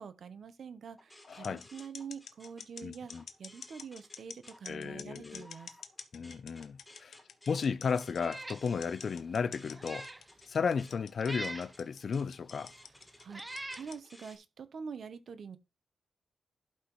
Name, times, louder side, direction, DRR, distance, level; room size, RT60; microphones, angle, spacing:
voice 1, 0.0-3.1 3.4-5.7 13.2-15.6, right 6 dB, 60° right, 0.8 m, -45 dB
sound 1, 1.0-4.6 5.0-14.4, left 1 dB, 10° left, 1.7 m, -58 dB
sound 2, 1.3-14.1, left 7 dB, 85° left, 0.8 m, -48 dB
voice 2, 1.3-1.6 2.8-3.2 4.7-5.5 6.1-7.2 7.5-10.1 10.5-12.7, left 6 dB, 50° left, 0.5 m, -34 dB
Meow, 8.1-8.6 9.1-9.2 9.7-10.2 11.2-11.7 12.6-12.7 13.3-13.9, right 2 dB, 15° right, 0.4 m, -42 dB
11.5 x 5.8 x 3.1 m
wide cardioid pair, 165°, 0 cm